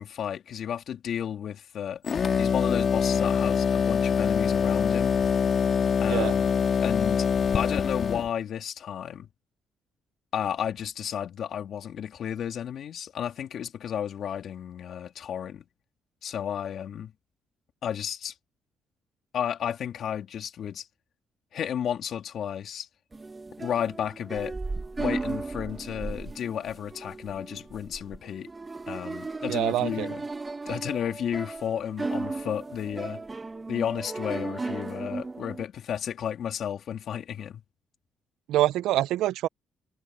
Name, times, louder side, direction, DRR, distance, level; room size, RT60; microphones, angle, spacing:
voice 1, 0.0-2.0 2.4-5.2 6.0-6.5 6.8-7.3 7.5-9.3 10.3-15.6 16.2-17.1 17.8-18.3 19.3-20.9 21.5-22.9 23.6-24.5 25.0-28.5 28.9-30.2 30.6-33.2 33.7-37.6, left 9 dB, 65° left, 3.2 m, -32 dB
sound 1, 2.0-8.3, left 6 dB, 50° left, 2.3 m, -24 dB
sound 2, 23.1-35.6, right 3 dB, 25° right, 1.8 m, -36 dB
voice 2, 29.5-30.1 38.5-39.5, right 14 dB, 90° right, 0.6 m, -25 dB
cardioid pair, 90°, 0 cm